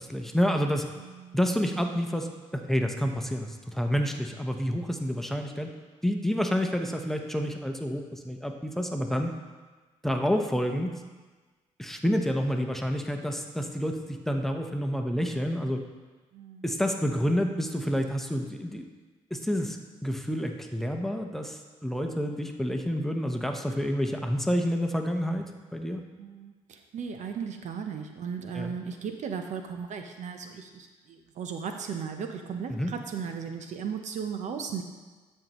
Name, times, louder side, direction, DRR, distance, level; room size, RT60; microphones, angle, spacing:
voice 1, 0.0-0.8 1.3-2.3 2.5-5.7 6.0-9.3 10.0-11.0 11.8-15.8 16.6-18.9 19.3-26.0 28.5-28.8 32.7-32.9, equal, ahead, 3 dB, 0.9 m, -29 dB
voice 2, 1.0-1.4 16.3-16.8 26.2-34.8, right 6 dB, 65° right, 5 dB, 0.8 m, -36 dB
12.5 x 5.5 x 3.1 m, 1.3 s
supercardioid pair, 65°, 13 cm